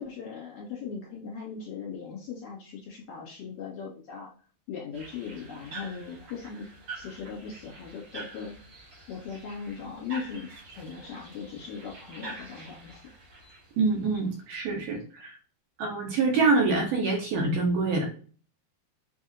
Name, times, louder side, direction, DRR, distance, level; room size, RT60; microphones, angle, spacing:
voice 1, 0.0-4.3 4.7-6.7 6.9-8.6 9.1-13.0, left 6 dB, 60° left, -5 dB, 2.6 m, -39 dB
sound 1, 4.9-14.6, right 2 dB, 50° right, 1.6 m, -46 dB
voice 2, 13.8-15.4 15.8-18.1, right 3 dB, 70° right, 0 dB, 2.4 m, -25 dB
7.0 x 2.7 x 2.7 m, 0.39 s
omnidirectional pair, 4.4 m